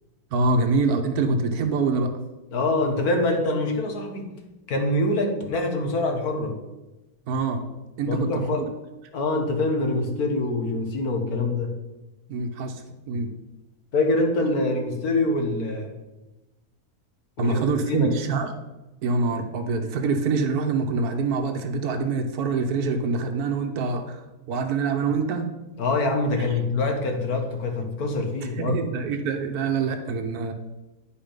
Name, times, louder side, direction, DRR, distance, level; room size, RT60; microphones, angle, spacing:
voice 1, 0.3-2.1 7.3-7.6 8.0-8.6 12.3-13.3 17.4-18.5 19.0-25.5 28.6-30.5, right 4 dB, 90° right, 6 dB, 1.4 m, -25 dB
voice 2, 2.5-4.3 4.7-6.6 8.1-8.7 9.1-11.7 13.9-15.9 17.4-18.1 25.8-28.8, left 2 dB, 85° left, 3 dB, 1.8 m, -25 dB
10.5 x 5.1 x 5.1 m, 1.1 s
omnidirectional pair, 1.6 m